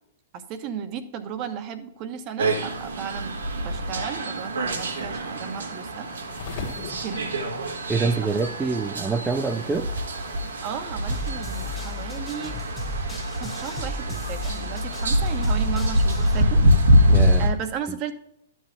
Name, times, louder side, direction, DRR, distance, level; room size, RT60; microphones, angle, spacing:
voice 1, 0.3-3.4 3.6-6.1 6.8-7.3 8.2-8.4 10.4-12.6 13.4-16.6 17.4-18.1, right 8 dB, 40° right, 9 dB, 1.2 m, -34 dB
sound 1, 2.4-17.5, equal, 85° right, 1.8 m, -24 dB
sound 2, 6.3-11.9, left 4 dB, 60° left, 1.9 m, -42 dB
voice 2, 7.9-9.9 17.1-17.5, right 4 dB, 10° right, 5 dB, 0.6 m, -25 dB
sound 3, 11.1-16.4, left 2 dB, 10° left, 1.6 m, -35 dB
12.0 x 7.4 x 3.5 m, 0.74 s
hypercardioid pair, 115°, 0 cm